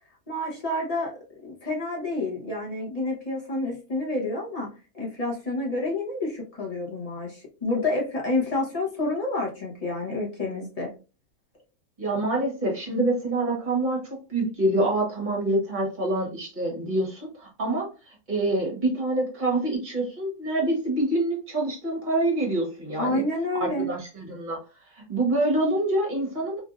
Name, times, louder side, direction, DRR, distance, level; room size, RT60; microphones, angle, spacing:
voice 1, 0.3-1.1 1.4-4.7 4.9-10.9 23.0-23.9, left 2 dB, 30° left, -2 dB, 0.9 m, -29 dB
voice 2, 12.0-14.0 14.3-23.2 23.6-24.6 25.0-26.6, right 2 dB, 35° right, -1 dB, 1.2 m, -26 dB
3.1 x 2.6 x 2.4 m, 0.32 s
omnidirectional pair, 1.6 m